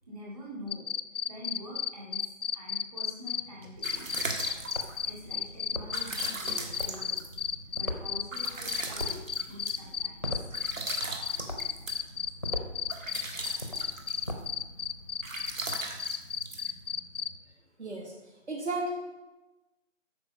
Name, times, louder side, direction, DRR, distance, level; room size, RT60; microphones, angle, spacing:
voice 1, 0.1-0.9 1.3-4.3 5.0-7.2 7.8-9.2 9.5-10.5 11.3-11.4, left 1 dB, 30° right, -4 dB, 2.1 m, -45 dB
sound 1, 0.7-3.4 3.8-17.3, left 8 dB, 65° left, 0.5 m, -32 dB
sound 2, 3.4-17.3, right 2 dB, 80° right, 1.7 m, -40 dB
sound 3, 3.7-15.5, left 1 dB, 25° left, 0.6 m, -42 dB
voice 2, 17.8-18.1 18.5-18.9, right 2 dB, 60° right, -1 dB, 1.7 m, -33 dB
8.7 x 5.5 x 6.2 m, 1.1 s
figure-of-eight pair, 175°, 38 cm